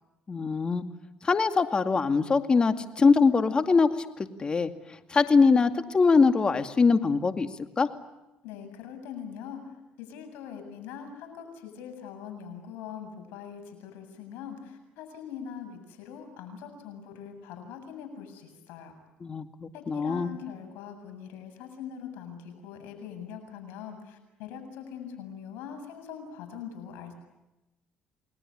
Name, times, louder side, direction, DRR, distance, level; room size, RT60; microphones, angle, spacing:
voice 1, 0.3-0.8 1.2-3.9 4.2-4.7 5.1-7.5 7.8-7.9 19.2-20.3, left 4 dB, 30° left, 8 dB, 2.2 m, -23 dB
voice 2, 8.4-9.6 10.0-19.0 19.7-27.1, left 7 dB, 80° left, 6 dB, 7.6 m, -42 dB
29.5 x 20.5 x 10.0 m, 1.0 s
cardioid pair, 95°, 3 cm